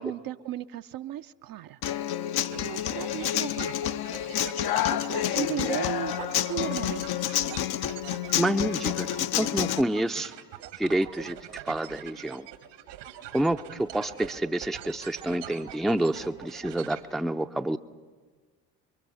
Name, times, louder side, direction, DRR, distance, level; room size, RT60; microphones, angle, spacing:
voice 1, 0.0-1.8 2.5-3.7 4.8-7.2, right 12 dB, 45° right, 10 dB, 0.7 m, -35 dB
Human voice / Acoustic guitar, 1.8-9.8, left 11 dB, 50° left, 0.8 m, -29 dB
sound 1, 2.3-17.0, right 11 dB, 75° right, 1.9 m, -44 dB
voice 2, 8.4-9.1 9.4-10.3 10.8-11.4 11.6-12.5 13.3-17.8, right 1 dB, ahead, 8 dB, 0.6 m, -28 dB
29.0 x 23.0 x 5.7 m, 1.5 s
hypercardioid pair, 55°, 49 cm